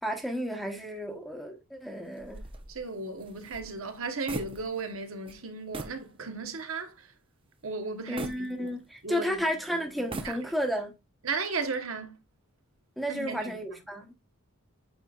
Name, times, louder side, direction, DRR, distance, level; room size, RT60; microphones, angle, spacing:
voice 1, 0.0-2.4 8.1-10.9 13.0-14.1, equal, ahead, 1.1 m, -32 dB
sound 1, 2.2-5.0 5.3-5.4 5.7-6.1 6.5-6.6 8.2-9.2 9.9-10.8, right 2 dB, 25° right, 0.7 m, -41 dB
voice 2, 2.7-6.9 7.6-8.7 9.0-9.3 10.0-10.4 11.2-12.2 13.1-13.5, right 4 dB, 65° right, 1.1 m, -35 dB
8.4 x 5.0 x 2.4 m
head